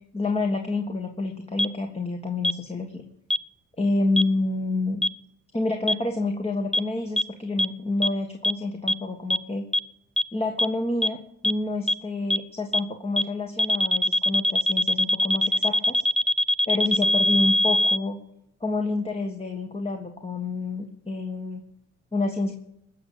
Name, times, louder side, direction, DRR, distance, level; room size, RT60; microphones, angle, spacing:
voice 1, 0.1-3.0 3.8-5.0 5.5-9.6 10.3-11.2 11.4-16.0 16.7-18.2 18.6-21.6 22.1-22.5, left 2 dB, 20° left, 4 dB, 1.8 m, -28 dB
sound 1, 1.6-1.7 2.4-2.5 3.3-3.4 4.2-4.3 5.0-5.1 5.9-6.0 6.7-6.8 7.2-7.3 7.6-7.7 8.0-8.1 8.4-8.5 8.9-9.0 9.3-9.4 9.7-9.8 10.2-10.3 10.6-10.7 11.0-11.1 11.4-11.5 11.9-12.0 12.3-12.4 12.7-12.8 13.2-13.3 13.6-18.0, left 1 dB, ahead, 0.5 m, -21 dB
19.5 x 6.9 x 8.7 m, 0.77 s
cardioid pair, 90°, 30 cm